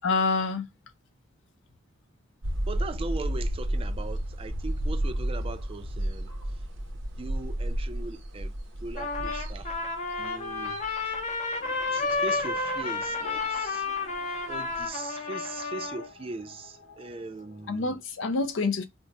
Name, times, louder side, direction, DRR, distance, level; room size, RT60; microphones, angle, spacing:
voice 1, 0.0-0.7 17.7-18.9, left 4 dB, 85° left, 0.5 m, -27 dB
sound 1, 2.4-14.9, right 1 dB, 85° right, 0.8 m, -33 dB
voice 2, 2.7-6.6 7.1-8.5 8.8-9.8 10.2-10.8 11.9-13.9 14.5-18.0, right 3 dB, 30° right, 0.4 m, -40 dB
Trumpet, 9.0-16.1, left 3 dB, 35° left, 0.6 m, -31 dB
sound 2, 11.5-18.0, left 3 dB, 60° left, 2.4 m, -52 dB
4.3 x 2.0 x 2.7 m
head